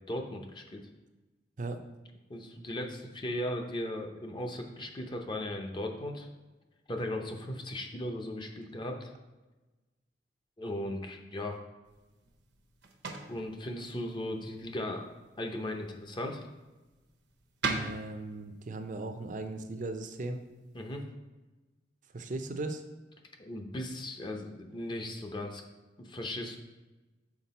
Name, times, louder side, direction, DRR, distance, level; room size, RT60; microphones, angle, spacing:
voice 1, 0.1-0.8 2.3-6.3 6.9-9.1 10.6-11.6 13.3-15.0 15.4-16.4 20.7-21.1 23.4-25.6 26.0-26.6, left 1 dB, 25° left, 3 dB, 0.7 m, -37 dB
sound 1, 11.8-21.0, right 4 dB, 75° right, 0.8 m, -43 dB
voice 2, 17.7-20.4 22.1-22.8, right 2 dB, 45° right, 7 dB, 0.5 m, -37 dB
5.9 x 4.4 x 4.1 m, 1.1 s
head